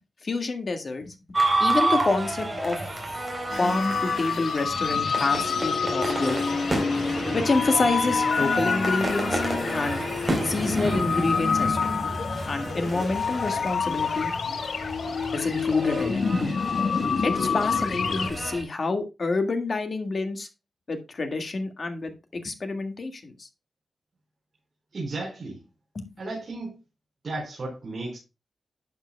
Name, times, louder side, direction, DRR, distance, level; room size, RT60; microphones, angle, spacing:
voice 1, 0.2-1.1 1.6-2.8 3.6-6.6 7.3-9.4 9.7-10.0 10.4-11.9 12.4-14.3 15.3-16.5 17.2-20.5 20.9-23.5 26.0-26.1, left 3 dB, 45° left, 1.8 m, -28 dB
sound 1, 1.3-18.6, right 2 dB, 15° right, 3.7 m, -30 dB
sound 2, 3.5-18.3, left 5 dB, 80° left, 1.3 m, -27 dB
voice 2, 24.9-25.6 26.2-26.8 27.2-28.2, right 2 dB, 45° right, 4.5 m, -34 dB
12.0 x 7.9 x 2.2 m
wide cardioid pair, 150°, 0 cm